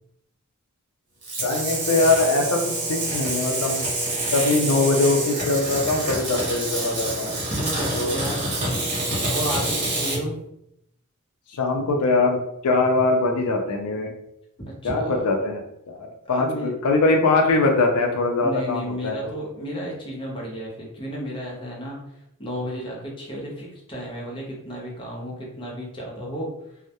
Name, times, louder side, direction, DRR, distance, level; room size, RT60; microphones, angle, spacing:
sound 1, 1.2-10.2, right 2 dB, 35° right, 1.0 m, -27 dB
voice 1, 1.4-3.9 4.3-7.3 7.9-8.2 11.5-14.1 14.8-19.2, left 3 dB, 80° left, 3 dB, 0.4 m, -22 dB
voice 2, 7.2-8.5 9.0-10.4 14.7-15.2 16.2-16.7 18.4-22.0 22.4-26.5, equal, 25° left, -3 dB, 0.6 m, -33 dB
2.2 x 2.0 x 2.7 m, 0.79 s
head